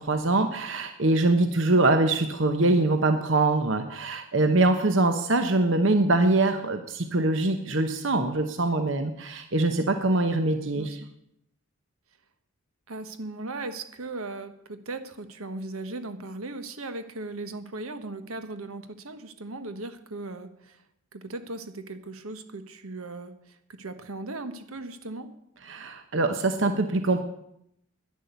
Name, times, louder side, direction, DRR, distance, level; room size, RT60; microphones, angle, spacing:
voice 1, 0.0-10.9 25.7-27.2, right 2 dB, 60° right, 7 dB, 1.0 m, -23 dB
voice 2, 10.8-11.1 12.9-20.8 21.1-25.3, right 2 dB, 85° right, 10 dB, 1.3 m, -38 dB
11.0 x 10.5 x 8.1 m, 0.76 s
head